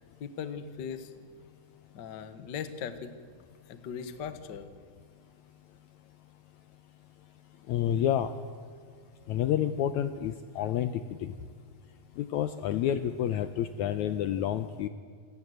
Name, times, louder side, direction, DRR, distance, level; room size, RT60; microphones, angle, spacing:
voice 1, 0.2-1.1 1.9-3.2 3.7-4.7, left 7 dB, 60° left, 11 dB, 1.2 m, -39 dB
voice 2, 7.7-8.3 9.3-11.3 12.2-14.9, left 10 dB, 75° left, 11 dB, 1.8 m, -29 dB
27.5 x 18.0 x 7.9 m, 2.1 s
omnidirectional pair, 4.0 m